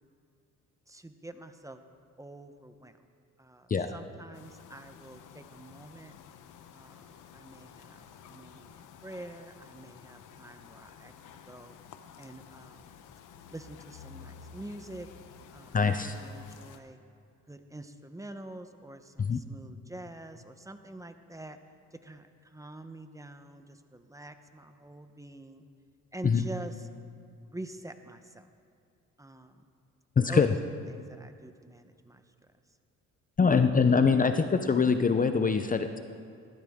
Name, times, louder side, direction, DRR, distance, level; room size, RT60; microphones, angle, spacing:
voice 1, 0.9-1.8 2.2-3.0 3.4-6.1 6.7-11.8 12.2-12.8 13.5-15.1 15.5-17.0 17.5-21.6 21.9-25.6 26.1-26.9 27.4-28.5 29.2-29.7 30.3-30.5 30.9-32.5, right 1 dB, 10° right, 8 dB, 0.9 m, -46 dB
sound 1, 4.3-16.8, left 7 dB, 85° left, 0.9 m, -52 dB
voice 2, 15.7-16.1 19.2-19.4 26.2-26.4 30.2-30.5 33.4-36.0, left 5 dB, 30° left, 8 dB, 0.6 m, -24 dB
20.0 x 14.0 x 3.6 m, 2.4 s
cardioid pair, 90°, 30 cm